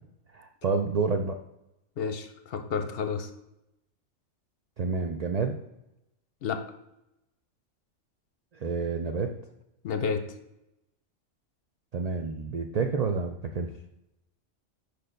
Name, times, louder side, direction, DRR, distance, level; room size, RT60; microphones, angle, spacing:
voice 1, 0.3-1.4 4.8-5.6 8.5-9.3 11.9-13.7, right 4 dB, 90° right, 4 dB, 0.3 m, -29 dB
voice 2, 2.0-3.3 6.4-6.6 9.8-10.2, left 5 dB, 60° left, 7 dB, 0.7 m, -30 dB
5.0 x 4.3 x 5.1 m, 0.89 s
omnidirectional pair, 1.3 m